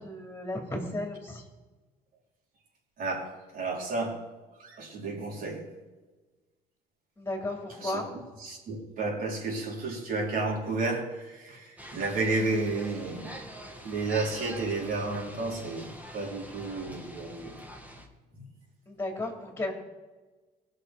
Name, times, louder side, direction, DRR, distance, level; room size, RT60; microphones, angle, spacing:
voice 1, 0.0-1.4 7.2-8.1 18.9-19.7, left 2 dB, 15° left, 2 dB, 3.1 m, -34 dB
voice 2, 3.0-4.2 4.6-5.6 7.8-8.0 8.4-13.3 13.8-17.5 18.3-18.4, right 3 dB, 55° right, -2 dB, 4.5 m, -32 dB
sound 1, 11.8-18.1, equal, 10° right, 2.2 m, -44 dB
19.5 x 6.5 x 4.9 m, 1.2 s
cardioid pair, 110°, 17 cm